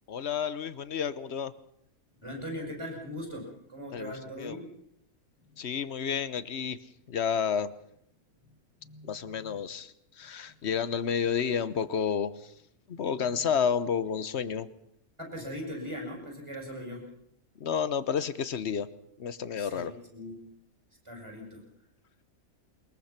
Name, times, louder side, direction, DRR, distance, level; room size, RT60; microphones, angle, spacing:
voice 1, 0.1-1.5 3.9-4.6 5.6-6.8 7.1-7.7 9.0-12.3 12.9-14.7 17.6-18.9 19.2-19.9, left 7 dB, 50° left, 15 dB, 1.2 m, -30 dB
voice 2, 2.2-4.7 5.5-5.6 8.8-9.6 15.2-17.1 19.6-20.4 21.0-21.7, equal, 20° right, 1 dB, 6.7 m, -40 dB
22.5 x 21.5 x 5.8 m, 0.72 s
omnidirectional pair, 1.5 m